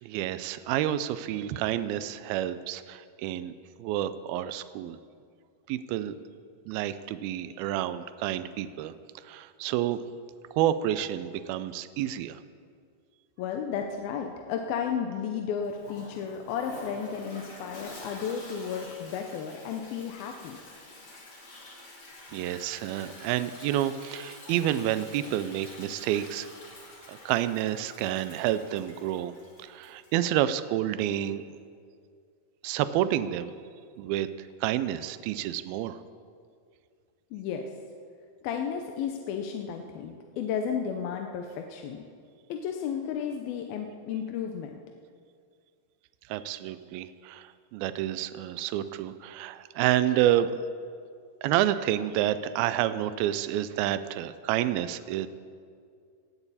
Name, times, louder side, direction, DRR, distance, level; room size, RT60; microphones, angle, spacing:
voice 1, 0.0-3.5 3.8-5.0 5.7-6.1 6.7-8.9 9.2-10.0 10.5-12.4 22.3-26.5 27.1-29.3 29.6-31.4 32.6-33.5 34.0-36.0 46.3-50.5 51.4-55.3, right 12 dB, 80° right, 13 dB, 2.4 m, -29 dB
voice 2, 13.4-20.6 37.3-37.7 38.4-42.0 42.5-44.8, left 7 dB, 75° left, 3 dB, 2.5 m, -33 dB
Toilet flush, 15.6-30.3, left 2 dB, 35° left, 3.3 m, -47 dB
19.0 x 17.0 x 4.2 m, 2.2 s
omnidirectional pair, 4.6 m